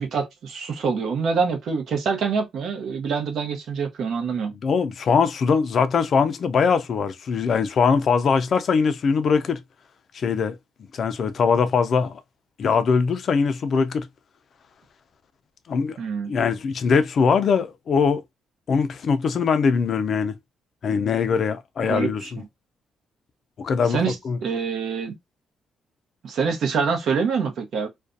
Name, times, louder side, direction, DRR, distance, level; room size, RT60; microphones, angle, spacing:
voice 1, 0.0-4.5 16.0-16.3 21.9-22.3 23.9-24.2 24.4-25.1 26.2-27.9, right 5 dB, 65° right, 0.8 m, -25 dB
voice 2, 4.6-9.6 10.1-10.6 10.9-12.2 12.6-14.1 15.7-16.0 16.3-18.2 18.7-20.4 20.8-22.4 23.6-24.0 24.2-24.4, left 5 dB, 55° left, 0.4 m, -21 dB
2.5 x 2.2 x 2.5 m
cardioid pair, 90°, 0 cm